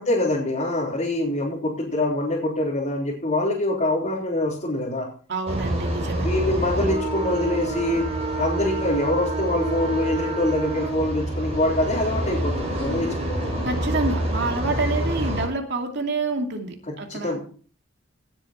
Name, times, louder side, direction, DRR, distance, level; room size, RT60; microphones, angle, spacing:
voice 1, 0.0-5.1 6.2-8.1 8.3-13.1 13.4-13.6 16.9-17.4, left 1 dB, 40° left, -6 dB, 3.7 m, -24 dB
voice 2, 5.3-6.3 13.6-17.4, right 3 dB, 60° right, 3 dB, 2.6 m, -27 dB
sound 1, 5.5-15.4, right 1 dB, 35° right, 5.6 m, -27 dB
17.5 x 8.6 x 4.4 m, 0.43 s
head